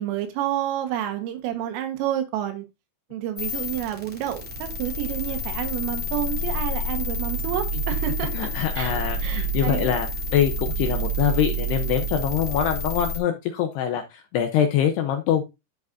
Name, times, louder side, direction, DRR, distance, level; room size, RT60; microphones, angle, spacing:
voice 1, 0.0-2.7 3.1-8.5 8.8-8.9 9.2-9.9, right 11 dB, 85° right, 4.1 m, -29 dB
sound 1, 3.4-13.2, right 1 dB, 5° right, 1.1 m, -28 dB
voice 2, 8.3-15.4, left 9 dB, 75° left, 2.5 m, -24 dB
13.0 x 5.2 x 2.6 m
omnidirectional pair, 5.7 m